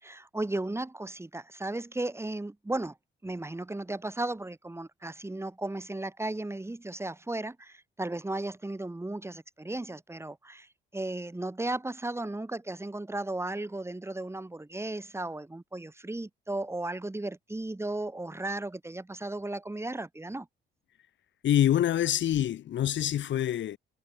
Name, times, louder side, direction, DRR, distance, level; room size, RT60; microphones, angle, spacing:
voice 1, 0.0-2.9 3.2-10.7 10.9-20.5, right 2 dB, 15° right, 6.1 m, -35 dB
voice 2, 21.4-23.8, left 11 dB, 70° left, 2.0 m, -26 dB
cardioid pair, 90°, 20 cm